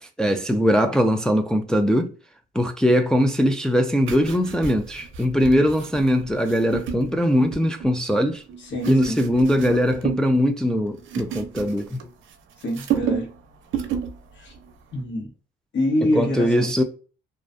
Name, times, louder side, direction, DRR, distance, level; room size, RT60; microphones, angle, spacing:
voice 1, 0.0-2.1 2.5-8.4 8.9-12.0 16.1-16.8, equal, 5° left, 0.3 m, -21 dB
sound 1, 4.0-7.9 8.5-10.3 10.6-12.3 12.6-13.4 13.7-14.2 14.5-14.7, right 8 dB, 80° right, 0.5 m, -31 dB
voice 2, 8.6-9.2 12.6-13.3 14.3-14.5 14.9-15.3 15.7-16.7, left 1 dB, 65° left, 1.1 m, -25 dB
2.4 x 2.2 x 2.4 m
cardioid pair, 90°, 20 cm